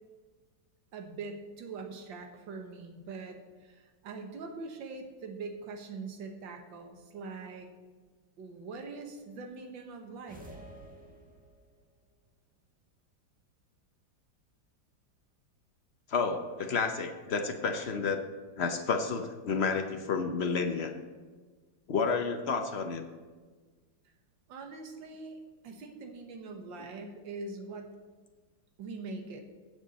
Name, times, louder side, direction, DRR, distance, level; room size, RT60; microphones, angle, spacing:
voice 1, 0.9-7.7 8.4-10.4 24.5-27.9 28.8-29.4, right 4 dB, 70° right, 4 dB, 2.0 m, -43 dB
sound 1, 10.3-11.8, right 1 dB, 5° right, 1.2 m, -50 dB
voice 2, 16.1-18.2 18.6-20.9 21.9-23.0, left 5 dB, 55° left, 6 dB, 0.7 m, -30 dB
15.0 x 8.1 x 4.2 m, 1.4 s
omnidirectional pair, 2.1 m